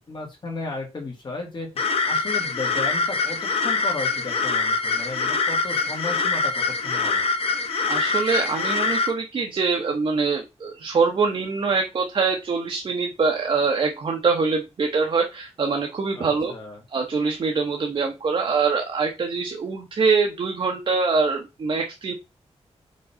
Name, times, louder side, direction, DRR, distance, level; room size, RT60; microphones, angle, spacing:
voice 1, 0.0-1.7 2.1-7.2 16.1-16.8, left 3 dB, 45° left, 0 dB, 2.1 m, -34 dB
sound 1, 1.8-9.1, left 4 dB, 60° left, 1.0 m, -24 dB
voice 2, 7.9-16.5 16.9-22.1, right 4 dB, 50° right, 2 dB, 1.0 m, -24 dB
5.3 x 3.8 x 5.6 m, 0.25 s
wide cardioid pair, 160°, 11 cm